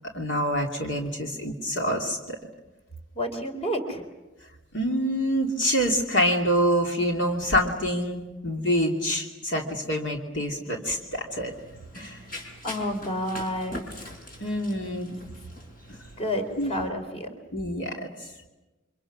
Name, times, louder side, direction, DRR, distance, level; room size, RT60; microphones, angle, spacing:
voice 1, 0.1-2.4 4.7-11.5 11.9-12.2 14.4-15.1 16.6-16.7 17.5-18.3, equal, 65° left, 1 dB, 2.8 m, -26 dB
voice 2, 3.1-4.0 12.6-13.8 16.2-17.3, equal, 30° left, 5 dB, 3.8 m, -30 dB
Run, 11.3-16.9, left 1 dB, 50° left, 5.5 m, -43 dB
29.5 x 25.5 x 6.2 m, 1.1 s
head